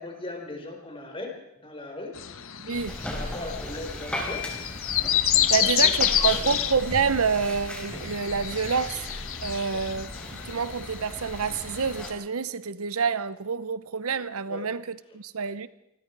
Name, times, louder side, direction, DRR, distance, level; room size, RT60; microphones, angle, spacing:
voice 1, 0.0-2.2 3.1-4.5 5.4-6.5 9.7-9.8 14.5-14.6, left 2 dB, 25° left, 4.6 m, -38 dB
sound 1, 2.2-12.1, left 11 dB, 65° left, 1.3 m, -29 dB
voice 2, 2.6-3.0 5.5-9.1 9.4-15.7, right 5 dB, 70° right, 0.8 m, -28 dB
sound 2, 2.7-12.1, left 1 dB, 5° left, 4.8 m, -37 dB
28.0 x 20.0 x 4.7 m
head